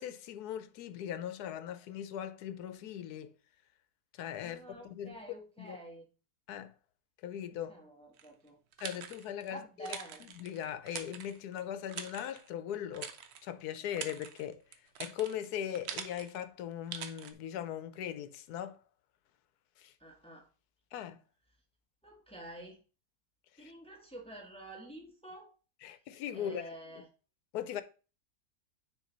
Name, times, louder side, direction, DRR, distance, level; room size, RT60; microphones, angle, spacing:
voice 1, 0.0-3.3 4.1-5.2 5.6-5.8 6.5-6.7 7.2-7.7 8.8-14.6 15.0-18.8 19.8-19.9 20.9-21.2 23.6-23.7 25.8-26.6 27.5-27.8, left 10 dB, 85° left, 1.2 m, -39 dB
voice 2, 4.4-6.1 7.7-8.6 9.5-10.2 20.0-20.5 22.0-22.8 23.6-25.5 26.3-27.1, right 1 dB, 5° left, 1.2 m, -49 dB
sound 1, 8.2-9.5 9.9-11.6 11.9-12.5 12.9-13.5 13.8-16.4 16.9-17.3, right 8 dB, 75° right, 1.2 m, -44 dB
9.5 x 3.2 x 3.9 m
omnidirectional pair, 1.6 m